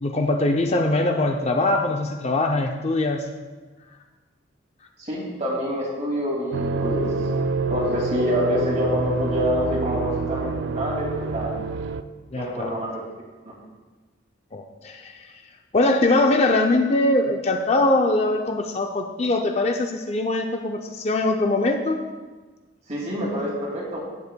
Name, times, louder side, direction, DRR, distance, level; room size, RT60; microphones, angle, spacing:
voice 1, 0.0-3.3 12.3-12.8 14.5-15.3 15.7-22.0, left 2 dB, 35° left, 4 dB, 0.4 m, -22 dB
voice 2, 5.0-7.3 7.7-11.5 12.4-13.0 13.4-13.5 22.9-24.0, equal, 40° right, -3 dB, 2.3 m, -26 dB
sound 1, 6.5-12.0, right 3 dB, 70° right, 0.4 m, -27 dB
14.0 x 8.2 x 2.2 m, 1.3 s
head